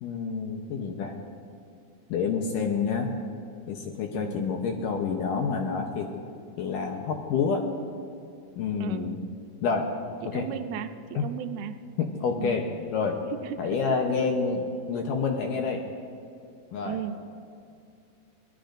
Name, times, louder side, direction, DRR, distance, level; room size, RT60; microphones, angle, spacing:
voice 1, 0.0-1.1 2.1-3.1 3.7-6.1 6.6-7.6 8.6-9.2 9.6-9.9 10.3-10.5 11.2-11.3 12.0-12.6 12.9-13.2 13.6-14.6 14.9-15.8 16.7-17.0, left 5 dB, 75° left, 2 dB, 2.1 m, -28 dB
voice 2, 4.1-4.5 8.8-9.2 10.2-11.8 12.4-12.6 13.2-14.4 16.8-17.2, right 10 dB, 80° right, 8 dB, 2.6 m, -36 dB
23.0 x 19.5 x 2.6 m, 2.5 s
omnidirectional pair, 4.6 m